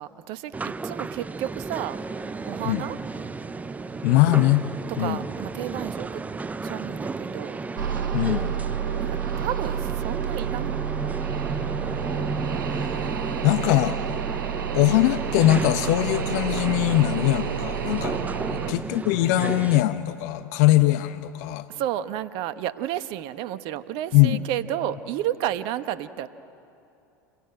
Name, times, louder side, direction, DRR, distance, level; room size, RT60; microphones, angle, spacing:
voice 1, 0.0-2.0 2.4-3.0 4.9-6.2 6.6-7.6 9.0-9.1 9.4-10.8 18.5-18.8 21.7-26.3, right 12 dB, 55° right, 13 dB, 1.2 m, -31 dB
sound 1, 0.5-19.8, right 4 dB, 15° right, 0.7 m, -33 dB
sound 2, 1.9-9.9, left 1 dB, 80° left, 5.2 m, -50 dB
voice 2, 4.0-4.6 5.0-5.2 8.1-8.6 12.7-13.0 13.4-14.0 14.7-18.2 18.5-21.7 24.1-24.5, left 15 dB, 60° left, 12 dB, 0.9 m, -21 dB
sound 3, 7.8-18.7, right 8 dB, 75° right, 1.2 m, -30 dB
28.5 x 22.5 x 8.9 m, 2.8 s
figure-of-eight pair, 80°, 10 cm